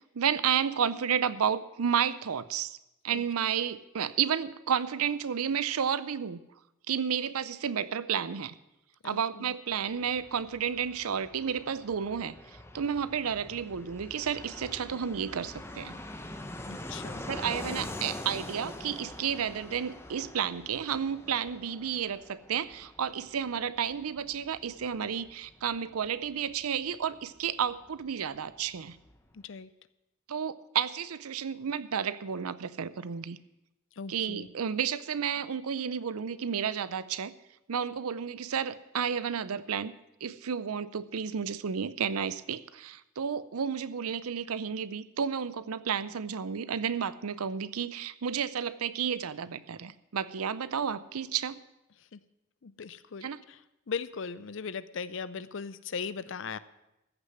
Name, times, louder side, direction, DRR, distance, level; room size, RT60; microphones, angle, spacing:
voice 1, 0.0-2.8 3.0-6.4 6.9-8.5 9.0-12.3 12.7-16.0 17.3-29.0 30.3-33.4 34.1-37.3 37.7-39.9 40.2-51.6 53.2-53.4, right 7 dB, 85° right, 16 dB, 0.6 m, -31 dB
voice 2, 9.0-9.5 16.7-17.2 29.3-29.7 34.0-34.5 52.1-52.2 52.6-53.6 53.9-56.6, left 5 dB, 60° left, 16 dB, 0.5 m, -38 dB
Fixed-wing aircraft airplane, 9.7-28.1 28.3-28.4 28.6-29.4, left 1 dB, 10° left, 0.8 m, -44 dB
14.5 x 6.6 x 7.7 m, 0.91 s
head